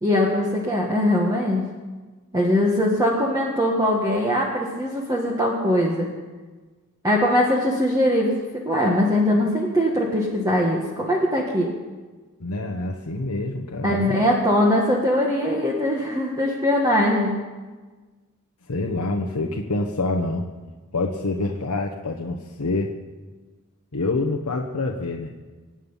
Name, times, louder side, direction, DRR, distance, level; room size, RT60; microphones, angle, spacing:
voice 1, 0.0-1.6 2.3-6.1 7.0-11.7 13.8-17.4, left 1 dB, 15° right, -2 dB, 1.6 m, -21 dB
voice 2, 12.4-14.1 18.7-20.5 20.9-22.9 23.9-25.3, left 2 dB, 85° left, 1 dB, 1.1 m, -26 dB
25.5 x 9.0 x 5.6 m, 1.3 s
head